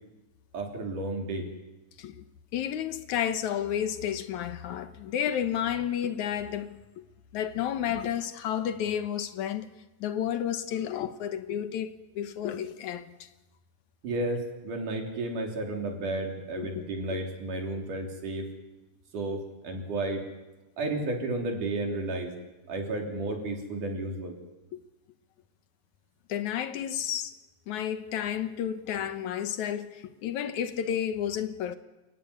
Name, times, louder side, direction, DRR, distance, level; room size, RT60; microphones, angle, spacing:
voice 1, 0.5-1.5 14.0-18.5 19.1-20.3 20.8-22.3 22.7-24.4, right 2 dB, 90° right, 5.1 m, -32 dB
voice 2, 2.5-7.1 7.3-9.7 10.0-13.3 16.6-16.8 17.1-17.2 24.7-24.8 26.3-27.3 27.7-31.8, left 9 dB, 75° left, 2.5 m, -31 dB
29.0 x 15.0 x 9.8 m
omnidirectional pair, 3.5 m